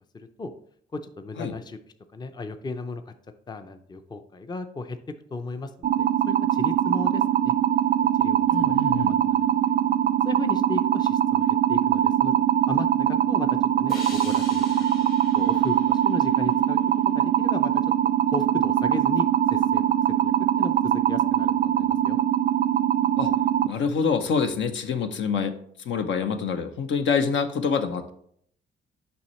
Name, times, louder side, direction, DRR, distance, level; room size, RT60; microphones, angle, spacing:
voice 1, 0.1-0.5 0.9-1.8 2.1-3.1 3.5-5.0 5.3-7.5 8.2-9.5 10.2-12.3 12.7-14.6 15.0-16.8 17.1-17.8 18.3-19.8 20.2-22.2, left 3 dB, 20° left, 8 dB, 0.5 m, -36 dB
sound 1, 5.8-23.7, right 10 dB, 45° right, 0.4 m, -22 dB
voice 2, 8.5-9.1 23.2-23.3 23.7-25.6 25.8-28.1, left 6 dB, 70° left, 7 dB, 0.8 m, -26 dB
sound 2, 13.9-17.2, left 3 dB, 50° left, 1.8 m, -43 dB
7.0 x 5.5 x 3.1 m, 0.64 s
cardioid pair, 90°, 20 cm